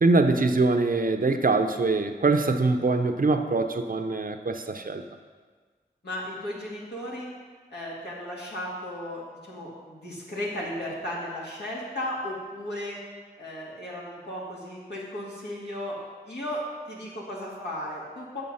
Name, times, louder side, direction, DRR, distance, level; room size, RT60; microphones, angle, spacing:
voice 1, 0.0-5.0, right 3 dB, 55° right, 7 dB, 0.7 m, -23 dB
voice 2, 6.0-7.3 7.7-13.0 13.4-16.0 16.2-18.4, left 1 dB, 85° left, -5 dB, 2.3 m, -35 dB
7.7 x 6.6 x 5.5 m, 1.5 s
cardioid pair, 40°, 17 cm